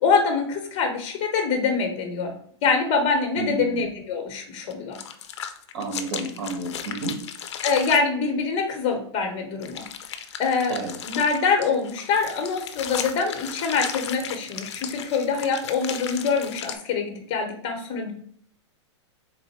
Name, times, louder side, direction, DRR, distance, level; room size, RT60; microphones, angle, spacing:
voice 1, 0.0-2.3 2.6-5.0 7.6-9.8 10.4-10.8 11.0-18.1, left 5 dB, 40° left, 3 dB, 1.2 m, -24 dB
voice 2, 3.3-3.8 5.7-7.1 10.7-10.9, right 3 dB, 65° right, 2 dB, 1.4 m, -31 dB
sound 1, 4.7-8.0 9.6-16.7, left 9 dB, 70° left, 0.6 m, -35 dB
4.0 x 2.5 x 4.3 m, 0.63 s
hypercardioid pair, 130°, 15 cm